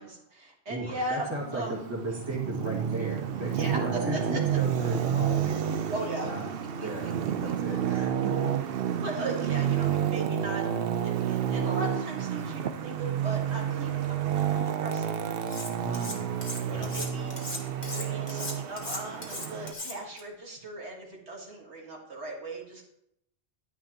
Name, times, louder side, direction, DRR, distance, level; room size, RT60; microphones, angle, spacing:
voice 1, 0.0-1.8 3.3-3.8 4.1-4.6 5.9-6.3 6.8-6.9 7.4-7.5 9.0-10.6 11.0-14.2 14.6-16.1 16.5-17.4 17.9-22.8, right 2 dB, 80° right, -1 dB, 2.0 m, -38 dB
voice 2, 0.7-6.4 6.8-7.1 7.4-8.5 15.8-16.3 16.6-16.9, right 1 dB, 25° right, -2 dB, 2.0 m, -36 dB
Traffic noise roadway noise, 1.2-19.7, right 9 dB, 65° right, 0.8 m, -30 dB
Cutlery silverware, 15.5-16.1 16.4-20.2, left 2 dB, 40° left, 1.6 m, -37 dB
10.5 x 9.6 x 2.9 m, 0.76 s
omnidirectional pair, 1.1 m